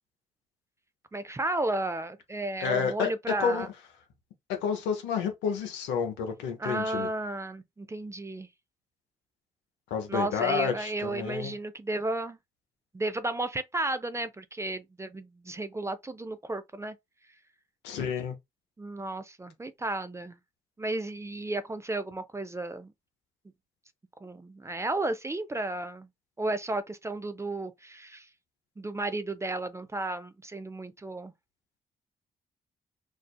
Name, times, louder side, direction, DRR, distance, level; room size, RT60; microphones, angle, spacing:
voice 1, 1.1-3.7 6.6-8.5 10.1-12.4 12.9-17.0 18.8-20.4 20.8-22.9 24.2-26.1 26.4-28.3 28.8-31.3, right 2 dB, 15° right, 0.4 m, -33 dB
voice 2, 2.6-3.1 3.4-3.7 4.5-7.1 9.9-11.5 17.8-18.3, left 6 dB, 80° left, 0.6 m, -30 dB
2.5 x 2.4 x 2.3 m
hypercardioid pair, 40°, 18 cm